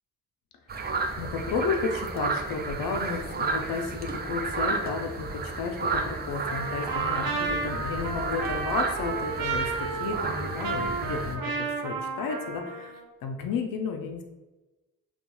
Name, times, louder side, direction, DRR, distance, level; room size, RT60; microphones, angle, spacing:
sound 1, 0.7-11.4, right 4 dB, 30° right, 0.4 m, -32 dB
voice 1, 1.2-12.9 13.2-14.2, left 5 dB, 70° left, 4 dB, 0.5 m, -32 dB
Trumpet, 6.4-13.0, right 4 dB, 80° right, 0.5 m, -32 dB
2.7 x 2.3 x 2.2 m, 1.1 s
supercardioid pair, 45°, 36 cm